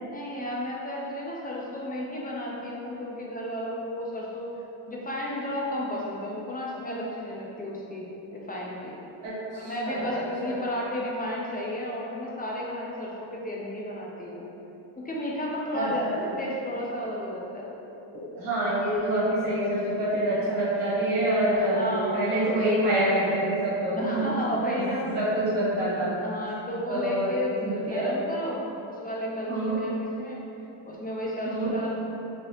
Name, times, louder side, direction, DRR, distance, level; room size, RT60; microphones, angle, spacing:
voice 1, 0.0-4.5 4.9-8.0 8.3-8.9 9.5-14.5 15.0-17.7 21.6-22.5 24.0-25.0 26.1-30.4 30.9-32.0, left 1 dB, 20° left, -4 dB, 0.3 m, -33 dB
voice 2, 9.2-10.6 15.7-16.1 18.1-24.3 24.7-24.8 25.1-26.2 26.9-27.3 27.6-28.1 29.5-29.8 31.4-31.7, right 1 dB, 85° right, -10 dB, 1.3 m, -26 dB
3.2 x 2.7 x 2.8 m, 3.0 s
cardioid pair, 110°, 49 cm